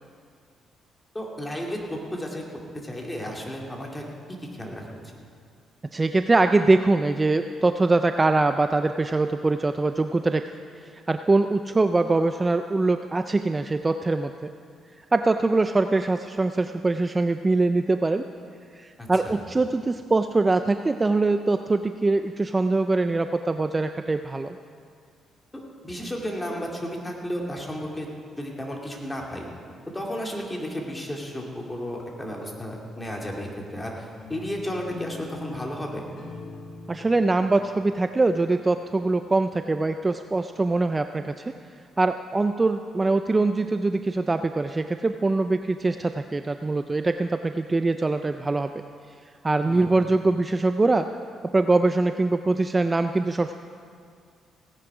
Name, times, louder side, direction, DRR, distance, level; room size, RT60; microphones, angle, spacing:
voice 1, 1.1-2.4 2.8-4.1 4.4-5.0 19.0-19.4 25.5-28.1 28.4-29.5 29.9-36.0 49.6-50.0, equal, 15° left, -1 dB, 2.3 m, -33 dB
voice 2, 5.9-10.4 10.8-14.3 15.1-18.3 18.7-24.6 36.9-41.5 42.0-48.7 49.4-51.1 51.5-53.5, right 3 dB, 20° right, 8 dB, 0.4 m, -23 dB
sound 1, 34.2-39.3, left 2 dB, 55° left, 2.9 m, -43 dB
16.5 x 10.0 x 4.9 m, 2.3 s
cardioid pair, 90°, 0 cm